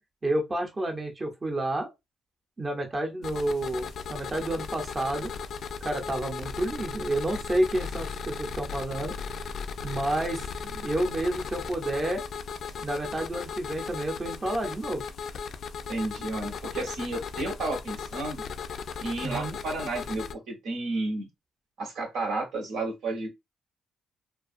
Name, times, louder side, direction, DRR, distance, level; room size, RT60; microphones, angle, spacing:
voice 1, 0.2-1.9 2.6-5.3 5.8-9.2 9.8-12.2 12.8-15.0 19.2-19.6, right 1 dB, 25° right, 0.7 m, -30 dB
sound 1, 3.2-20.3, left 6 dB, 60° left, 0.3 m, -37 dB
voice 2, 15.9-18.4 19.0-21.3 21.8-23.3, right 2 dB, 85° right, 1.2 m, -32 dB
2.4 x 2.3 x 2.5 m
cardioid pair, 90°, 0 cm